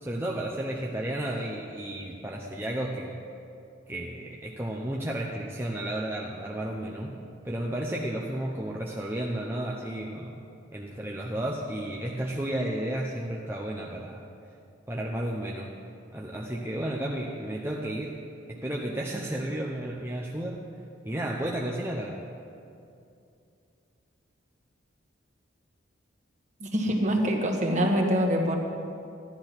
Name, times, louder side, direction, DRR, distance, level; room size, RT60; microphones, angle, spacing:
voice 1, 0.0-3.2 3.9-7.1 7.4-10.4 10.7-14.2 14.9-15.7 16.1-18.1 18.5-20.6 21.0-22.2, right 1 dB, 10° right, -2 dB, 0.8 m, -32 dB
voice 2, 26.6-28.6, equal, 35° right, 1 dB, 1.6 m, -25 dB
14.0 x 10.5 x 6.0 m, 2.6 s
head